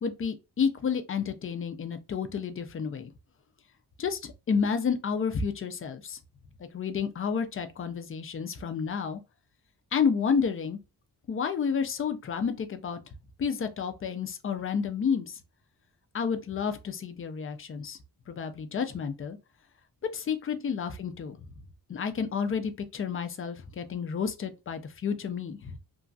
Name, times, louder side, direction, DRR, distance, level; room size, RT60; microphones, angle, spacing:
voice 1, 0.0-3.1 4.0-6.2 6.7-9.2 9.9-10.8 11.3-13.0 13.4-15.4 16.1-18.0 18.3-19.4 20.1-21.4 21.9-25.7, left 6 dB, 35° left, 0.4 m, -30 dB
3.0 x 2.4 x 2.5 m
wide cardioid pair, 145°, 40 cm